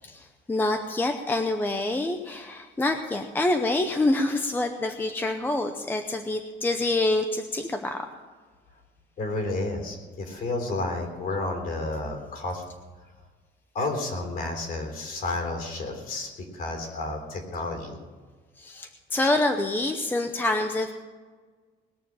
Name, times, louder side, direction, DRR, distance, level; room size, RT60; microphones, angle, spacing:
voice 1, 0.0-8.1 18.6-20.9, left 2 dB, 10° left, 6 dB, 0.7 m, -26 dB
voice 2, 9.2-12.6 13.7-18.0, left 2 dB, 45° left, 3 dB, 3.6 m, -31 dB
20.5 x 7.0 x 7.6 m, 1.4 s
cardioid pair, 180°, 20 cm